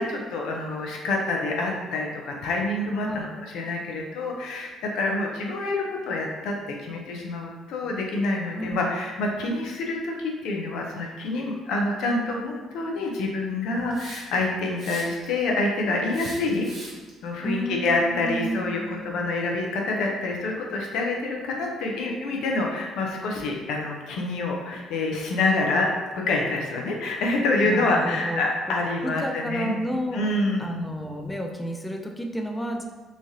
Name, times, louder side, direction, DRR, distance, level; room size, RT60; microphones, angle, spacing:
voice 1, 0.0-3.3 3.5-6.5 6.8-16.7 17.2-29.7 30.1-30.9, left 2 dB, 75° left, 0 dB, 0.5 m, -27 dB
voice 2, 8.5-8.9 17.4-19.2 27.6-28.4 29.0-30.3 30.6-32.8, equal, 10° left, 2 dB, 0.3 m, -31 dB
Hiss, 13.9-14.4 14.8-15.4 16.1-17.1, right 2 dB, 60° right, 1.0 m, -41 dB
3.1 x 2.3 x 2.6 m, 1.3 s
cardioid pair, 85°, 0 cm